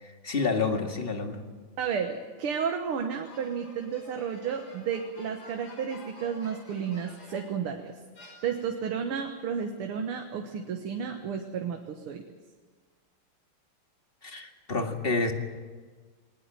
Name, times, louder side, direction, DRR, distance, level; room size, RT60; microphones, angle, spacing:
voice 1, 0.0-1.4 14.2-15.3, left 4 dB, 25° left, 4 dB, 2.1 m, -29 dB
voice 2, 1.8-7.9 8.4-12.2, right 7 dB, 85° right, 4 dB, 2.2 m, -32 dB
sound 1, 3.2-7.6 8.2-8.9, left 1 dB, 80° left, 6.6 m, -50 dB
20.0 x 19.5 x 9.0 m, 1.4 s
omnidirectional pair, 2.4 m